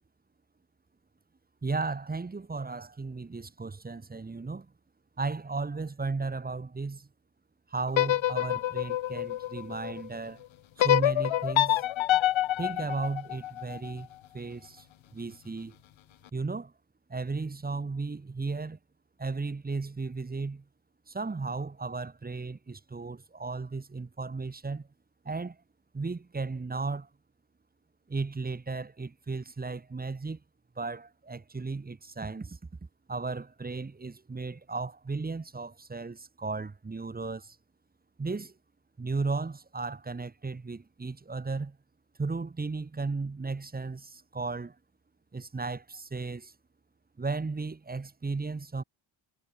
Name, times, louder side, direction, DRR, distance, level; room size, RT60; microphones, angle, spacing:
voice 1, 1.6-4.7 5.2-7.1 7.7-10.4 10.8-11.8 12.6-14.1 14.3-14.9 15.1-15.8 16.3-16.7 17.1-18.8 19.2-20.6 21.1-24.9 25.3-25.6 25.9-27.1 28.1-30.4 30.8-32.6 33.1-37.6 38.2-38.5 39.0-41.8 42.2-44.8 45.3-46.5 47.2-48.8, right 4 dB, 20° right, 1.9 m, -35 dB
sound 1, 7.9-10.1 10.8-13.9, left 13 dB, 75° left, 1.3 m, -27 dB
wide cardioid pair, 155°, 47 cm